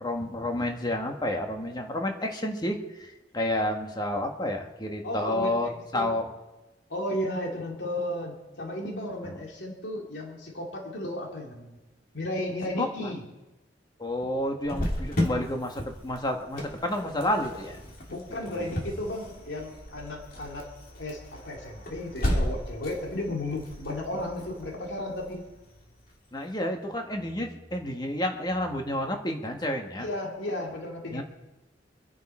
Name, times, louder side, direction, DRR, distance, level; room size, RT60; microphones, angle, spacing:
voice 1, 0.0-6.3 9.2-9.3 12.8-13.1 14.0-17.8 18.4-18.7 26.3-30.1 31.1-31.2, left 1 dB, 25° left, 3 dB, 1.6 m, -30 dB
voice 2, 5.0-6.2 6.9-11.8 12.1-13.2 18.1-20.7 21.0-25.5 30.0-31.2, left 1 dB, 75° left, 0 dB, 2.5 m, -34 dB
Cricket, 14.6-26.1, equal, 55° left, 2.9 m, -35 dB
25.5 x 10.5 x 4.4 m, 1.0 s
head